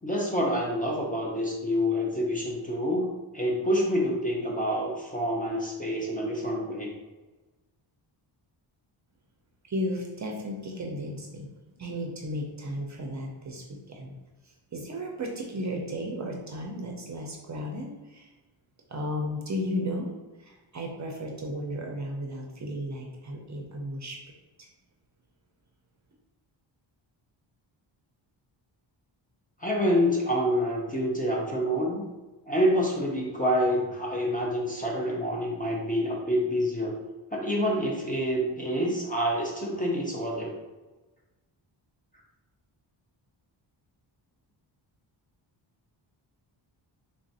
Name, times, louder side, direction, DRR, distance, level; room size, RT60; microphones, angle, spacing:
voice 1, 0.0-6.9 29.6-32.0 32.5-37.0 37.3-40.5, equal, 15° left, -3 dB, 0.6 m, -27 dB
voice 2, 9.7-11.5 11.8-14.1 14.7-18.3 18.9-20.1 20.4-24.2 24.6-24.7, equal, 35° right, 0 dB, 0.5 m, -34 dB
3.4 x 2.5 x 4.0 m, 1.2 s
wide cardioid pair, 145°, 48 cm